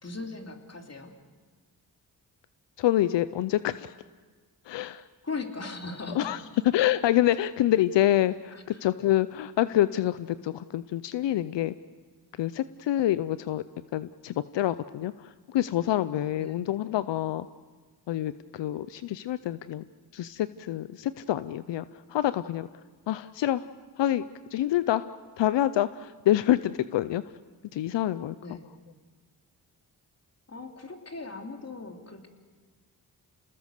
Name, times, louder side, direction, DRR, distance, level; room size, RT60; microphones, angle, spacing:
voice 1, 0.0-1.1 5.2-6.3 8.5-8.8 16.4-16.6 28.4-28.7 30.5-32.3, left 3 dB, 35° left, 3 dB, 3.1 m, -39 dB
voice 2, 2.8-3.9 4.7-5.0 6.2-6.4 6.7-11.7 12.4-13.6 13.9-17.5 18.1-19.8 20.1-21.8 22.1-22.7 23.1-23.6 24.0-24.2 24.5-25.1 25.4-27.2 27.7-28.4, left 13 dB, 85° left, 15 dB, 0.6 m, -26 dB
28.0 x 20.0 x 6.6 m, 1.4 s
cardioid pair, 55°, 42 cm